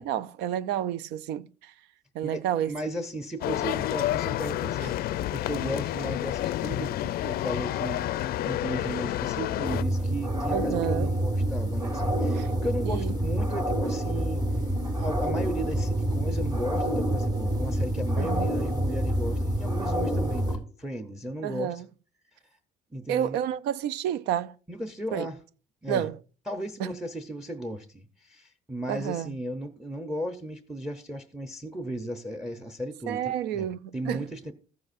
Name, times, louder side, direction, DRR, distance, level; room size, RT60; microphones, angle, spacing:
voice 1, 0.0-1.7 2.1-2.7 10.5-11.1 12.3-12.5 12.8-13.1 18.2-18.5 21.4-21.9 23.1-24.5 25.1-25.3 25.9-26.2 26.8-26.9 28.9-29.3 33.1-34.3, right 10 dB, 85° right, 0.4 m, -30 dB
voice 2, 2.2-8.0 8.4-14.5 15.0-21.8 22.9-23.4 24.7-25.4 25.8-26.1 26.5-33.7 33.9-34.5, right 1 dB, 5° right, 0.7 m, -35 dB
sound 1, 3.4-9.8, left 13 dB, 65° left, 0.4 m, -29 dB
sound 2, 9.6-20.6, right 1 dB, 25° right, 1.7 m, -27 dB
14.0 x 7.7 x 2.5 m
cardioid pair, 110°, 17 cm